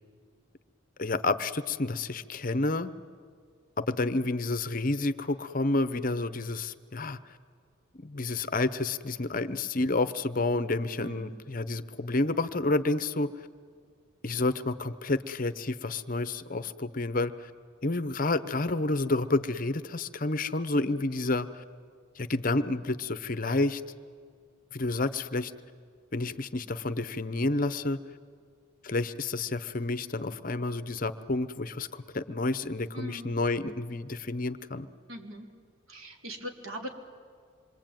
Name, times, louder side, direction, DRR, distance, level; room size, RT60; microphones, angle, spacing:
voice 1, 1.0-2.9 3.8-7.2 7.9-13.3 14.2-17.5 17.8-21.6 22.2-23.8 24.7-25.5 26.1-28.0 28.8-34.9, left 2 dB, 40° left, 12 dB, 0.8 m, -29 dB
voice 2, 11.0-11.4 32.9-33.3 35.1-35.5 35.9-36.9, equal, 80° right, 2 dB, 3.7 m, -40 dB
27.0 x 23.5 x 9.1 m, 2.1 s
head